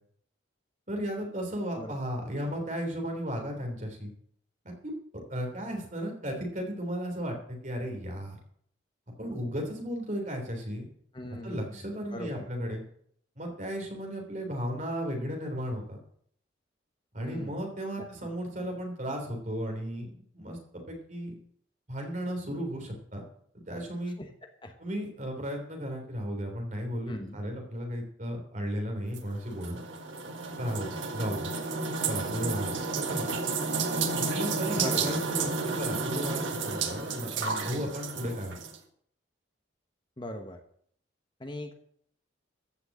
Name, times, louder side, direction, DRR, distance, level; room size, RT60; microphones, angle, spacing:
voice 1, 0.9-4.1 4.6-4.7 5.3-8.4 9.2-10.8 11.4-12.8 13.4-16.0 17.1-21.3 21.9-23.2 23.5-24.1 24.8-29.8 30.6-31.5 32.1-33.4 34.2-38.5, equal, 40° right, 2 dB, 3.3 m, -35 dB
voice 2, 11.1-11.8 12.1-12.5 17.2-17.6 18.0-18.1 24.2-24.3 24.6-24.7 27.1-27.4 34.7-35.5 37.5-37.9 40.2-40.6 41.4-41.7, left 1 dB, 25° left, 5 dB, 1.0 m, -40 dB
sound 1, 29.1-38.8, right 4 dB, 80° right, 1.7 m, -31 dB
14.5 x 6.1 x 8.6 m, 0.65 s
head